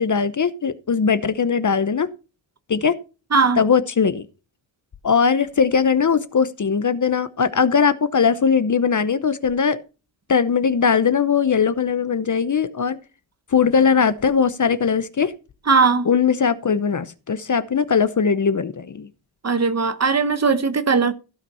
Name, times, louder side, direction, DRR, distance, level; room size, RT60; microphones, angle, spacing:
voice 1, 0.0-2.1 2.7-3.0 3.6-4.3 5.0-9.8 10.3-13.0 13.5-15.3 16.1-19.1, left 6 dB, 40° left, 0.8 m, -20 dB
voice 2, 3.3-3.6 15.7-16.1 19.4-21.1, right 4 dB, 35° right, 1.2 m, -18 dB
15.5 x 5.8 x 5.6 m
wide cardioid pair, 165°, 46 cm